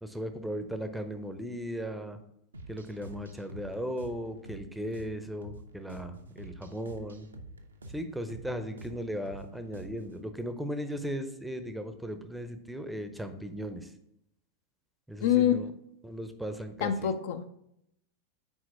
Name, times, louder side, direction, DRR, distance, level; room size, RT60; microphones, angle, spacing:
voice 1, 0.0-2.2 2.7-7.3 7.9-13.9 15.1-15.7 16.0-16.9, equal, 5° right, 8 dB, 0.6 m, -37 dB
sound 1, 2.5-10.2, right 1 dB, 75° right, 0.6 m, -48 dB
voice 2, 15.2-15.6 16.8-17.5, left 10 dB, 55° left, 9 dB, 0.4 m, -25 dB
6.2 x 4.4 x 4.2 m, 0.77 s
figure-of-eight pair, 90°, 0 cm